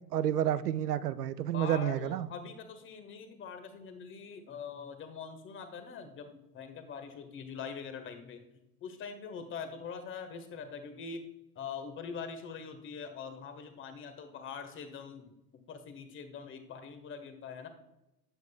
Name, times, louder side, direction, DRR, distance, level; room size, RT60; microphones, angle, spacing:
voice 1, 0.1-2.3, right 11 dB, 70° right, 16 dB, 0.7 m, -30 dB
voice 2, 1.5-8.4 8.8-11.3 11.5-15.3 15.7-17.7, left 6 dB, 25° left, 8 dB, 1.4 m, -43 dB
18.5 x 8.1 x 2.3 m, 0.93 s
figure-of-eight pair, 90°, 49 cm